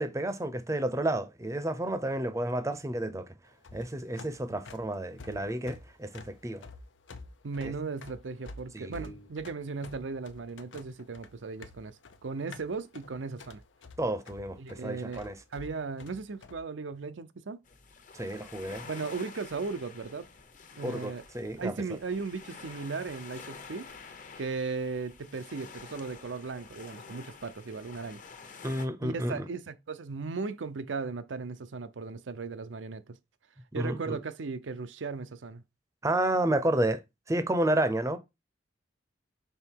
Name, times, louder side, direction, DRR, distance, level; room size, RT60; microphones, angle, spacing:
voice 1, 0.0-3.3 3.7-6.6 7.6-7.7 8.7-9.2 14.0-15.4 18.1-18.9 20.8-21.7 28.6-29.5 33.8-34.2 36.0-37.0 37.3-38.2, right 1 dB, 15° right, 0.6 m, -31 dB
sound 1, 3.5-16.6, left 3 dB, 90° left, 0.7 m, -49 dB
voice 2, 7.4-13.6 14.6-15.2 15.5-17.6 18.8-20.3 20.8-21.2 21.6-23.9 24.4-28.2 29.0-33.2 33.7-35.6, right 4 dB, 90° right, 0.6 m, -37 dB
sound 2, 17.6-28.9, left 5 dB, 45° left, 0.9 m, -49 dB
5.6 x 3.8 x 4.5 m
head